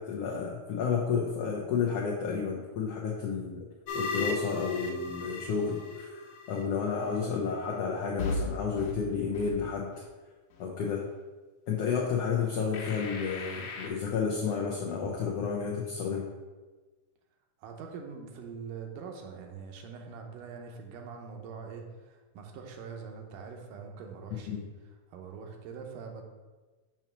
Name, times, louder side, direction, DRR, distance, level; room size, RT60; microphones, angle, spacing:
voice 1, 0.0-3.7 3.9-6.2 6.5-9.9 10.6-11.1 11.7-16.3 24.5-24.6, left 6 dB, 85° left, -2 dB, 1.4 m, -31 dB
sound 1, 3.9-6.7 8.2-8.4 8.8-8.9 9.3-9.5 10.0-10.1 12.7-13.9, left 3 dB, 65° left, 2.2 m, -36 dB
voice 2, 17.6-24.6 25.1-26.2, right 5 dB, 80° right, 2 dB, 2.3 m, -43 dB
7.0 x 3.0 x 5.9 m, 1.3 s
omnidirectional pair, 3.7 m